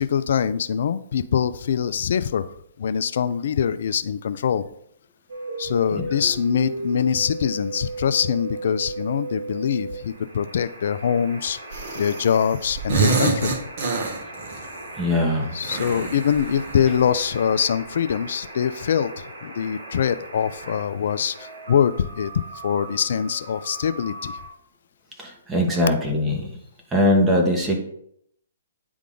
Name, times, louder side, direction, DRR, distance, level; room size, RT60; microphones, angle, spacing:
voice 1, 0.0-4.6 5.6-11.6 12.0-13.6 15.5-22.3 22.6-24.4, left 8 dB, 60° left, 13 dB, 0.4 m, -23 dB
sound 1, 5.3-24.5, right 2 dB, 80° right, 2.2 m, -37 dB
sound 2, 11.7-12.4 12.6-14.6 15.6-17.1, right 4 dB, 50° right, 1.7 m, -26 dB
voice 2, 15.0-15.5 25.2-26.5 26.9-27.8, left 1 dB, 15° right, 0 dB, 1.3 m, -21 dB
9.4 x 3.6 x 3.8 m, 0.71 s
hypercardioid pair, 140°, 0 cm